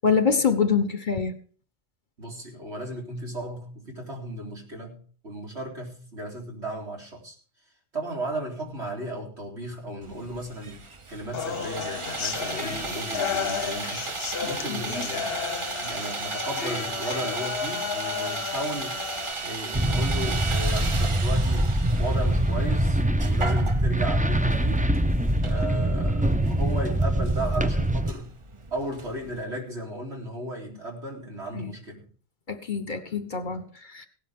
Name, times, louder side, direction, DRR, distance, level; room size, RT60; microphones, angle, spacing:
voice 1, 0.0-1.4 14.7-14.8 31.5-31.7 32.5-34.1, left 6 dB, 45° left, 10 dB, 1.2 m, -25 dB
voice 2, 2.2-7.4 7.9-14.0 14.4-15.4 15.8-19.0 19.4-24.9 25.4-28.3 28.7-32.1, right 1 dB, 70° right, -1 dB, 4.1 m, -35 dB
Sawing, 10.0-29.4, right 4 dB, 30° right, 0.8 m, -36 dB
sound 1, 11.3-19.3, left 7 dB, 60° left, 1.0 m, -33 dB
sound 2, 19.7-28.1, right 1 dB, 10° right, 0.4 m, -24 dB
16.5 x 12.5 x 3.7 m, 0.43 s
omnidirectional pair, 1.2 m